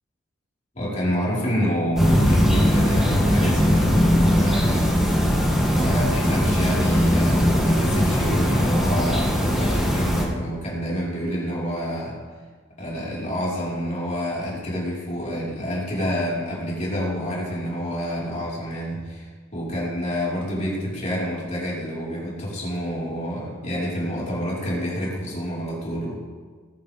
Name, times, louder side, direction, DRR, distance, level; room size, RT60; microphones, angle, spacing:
voice 1, 0.7-5.4 5.6-12.2 12.8-26.3, equal, 40° left, -6 dB, 4.5 m, -28 dB
sound 1, 2.0-10.2, equal, ahead, 2.5 m, -20 dB
18.5 x 11.5 x 3.6 m, 1.5 s
head